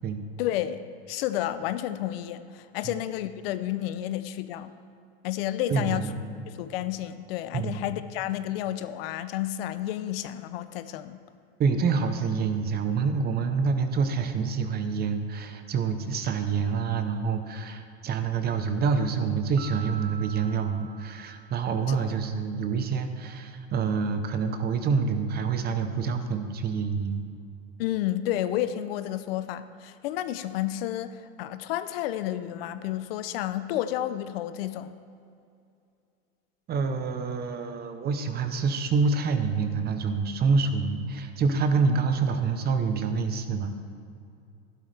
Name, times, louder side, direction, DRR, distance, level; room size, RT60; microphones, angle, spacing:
voice 1, 0.4-4.7 5.2-6.1 6.5-11.2 21.9-22.0 27.8-35.0, left 12 dB, 65° left, 12 dB, 0.6 m, -31 dB
voice 2, 5.7-6.3 7.5-7.8 11.6-27.2 36.7-43.8, right 5 dB, 30° right, 8 dB, 0.9 m, -27 dB
Piano, 19.6-22.1, right 7 dB, 90° right, 0.7 m, -45 dB
12.0 x 11.5 x 3.4 m, 2.5 s
supercardioid pair, 115°, 32 cm